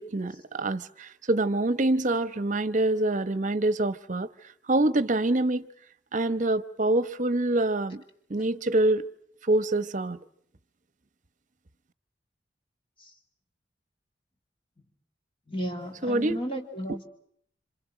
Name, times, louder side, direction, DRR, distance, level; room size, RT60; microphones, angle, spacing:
voice 1, 0.0-4.3 4.7-5.7 6.1-8.0 8.3-9.1 9.4-10.2 16.0-16.4, right 2 dB, 45° right, 1.0 m, -25 dB
voice 2, 15.5-17.1, equal, 30° left, 2.8 m, -34 dB
28.0 x 27.0 x 6.2 m
head